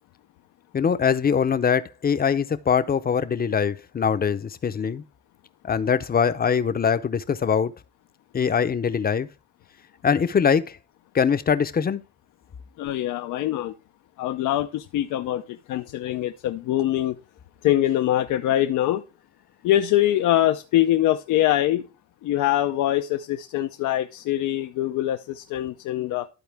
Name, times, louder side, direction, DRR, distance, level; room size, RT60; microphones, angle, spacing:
voice 1, 0.7-5.0 5.6-7.7 8.3-9.3 10.0-10.8 11.1-12.0, left 7 dB, 30° left, 0.6 m, -22 dB
voice 2, 12.8-13.7 14.2-17.2 17.6-19.0 19.6-21.9 22.2-26.3, left 13 dB, 85° left, 0.6 m, -23 dB
12.5 x 4.3 x 3.4 m
cardioid pair, 90°, 30 cm